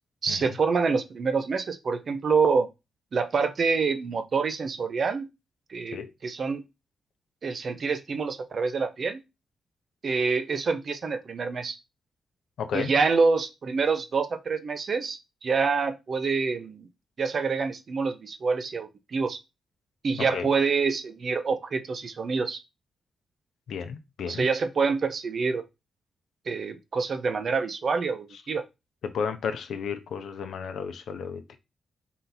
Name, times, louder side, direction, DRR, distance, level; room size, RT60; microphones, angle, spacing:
voice 1, 0.2-2.7 3.1-5.3 5.7-6.6 7.4-9.2 10.0-11.8 12.7-16.9 17.2-19.4 20.0-22.6 24.2-25.6 26.5-28.6, right 4 dB, 55° right, 0.6 m, -26 dB
voice 2, 12.6-12.9 20.3-20.5 23.7-24.5 29.0-31.6, left 6 dB, 75° left, 0.6 m, -33 dB
3.9 x 2.8 x 3.9 m
supercardioid pair, 45°, 0 cm